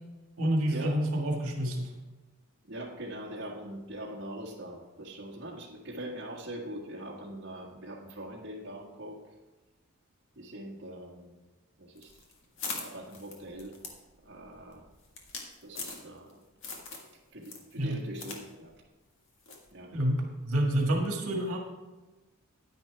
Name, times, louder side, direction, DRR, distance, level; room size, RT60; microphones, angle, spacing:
voice 1, 0.4-1.9 17.8-18.0 19.9-21.6, right 1 dB, 70° right, 1 dB, 1.8 m, -28 dB
voice 2, 2.7-9.2 10.3-11.4 11.8-12.1 12.6-13.8 14.2-14.8 15.6-16.4 16.9-17.0 17.3-18.7 19.7-19.9, right 1 dB, 50° right, -4 dB, 1.6 m, -42 dB
sound 1, 12.0-16.3 16.6-17.1 17.4-18.4 18.7-18.8 19.5-19.7, left 4 dB, 55° left, 1.8 m, -41 dB
10.0 x 10.0 x 3.4 m, 1.2 s
head